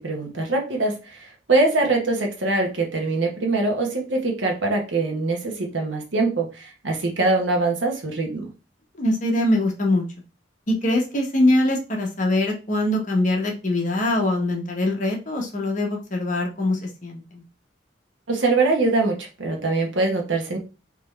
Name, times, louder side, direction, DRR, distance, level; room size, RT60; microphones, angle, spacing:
voice 1, 0.0-8.5 18.3-20.6, right 2 dB, 80° right, 1 dB, 1.0 m, -23 dB
voice 2, 9.0-10.0 10.7-17.4, left 1 dB, 40° left, 0 dB, 0.9 m, -23 dB
3.5 x 2.9 x 3.2 m, 0.31 s
head